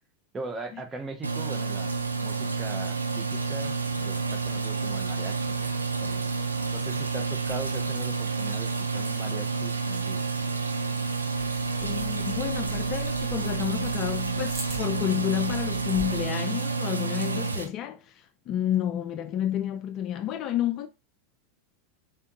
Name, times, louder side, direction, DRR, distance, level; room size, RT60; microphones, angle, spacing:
voice 1, 0.3-1.9 2.2-6.3 6.7-10.3, right 3 dB, 20° right, 0.9 m, -40 dB
sound 1, 1.2-17.6, right 4 dB, 80° right, 0.5 m, -29 dB
sound 2, 11.7-16.3, right 2 dB, 45° right, 1.5 m, -43 dB
voice 2, 11.8-20.9, left 11 dB, 40° left, 0.3 m, -30 dB
3.5 x 3.5 x 2.8 m
figure-of-eight pair, 85°, 0 cm